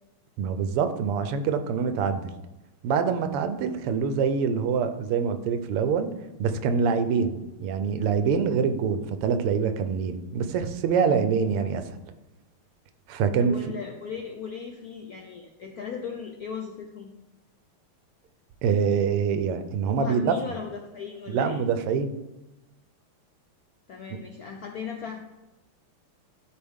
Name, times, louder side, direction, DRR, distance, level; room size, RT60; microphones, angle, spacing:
voice 1, 0.4-2.3 2.8-6.1 6.4-7.3 7.6-11.8 13.1-13.5 18.6-20.4 21.3-22.1, right 6 dB, 90° right, 9 dB, 1.6 m, -25 dB
voice 2, 13.4-17.1 20.0-21.6 23.9-25.2, left 6 dB, 75° left, 3 dB, 0.8 m, -37 dB
12.0 x 4.7 x 3.6 m, 1.0 s
omnidirectional pair, 2.4 m